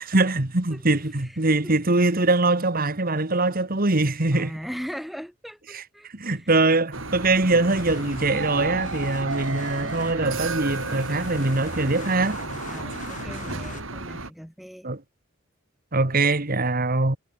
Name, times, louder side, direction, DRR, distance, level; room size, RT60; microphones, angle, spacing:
voice 1, 0.1-4.5 5.7-5.8 6.1-12.4 14.8-15.0 15.9-17.2, right 2 dB, 45° right, 2.0 m, -22 dB
voice 2, 0.7-1.7 4.3-6.6 12.7-14.9, equal, ahead, 7.7 m, -39 dB
sound 1, 6.9-14.3, right 3 dB, 85° right, 6.2 m, -33 dB
sound 2, 7.7-13.8, left 2 dB, 40° left, 5.5 m, -40 dB
head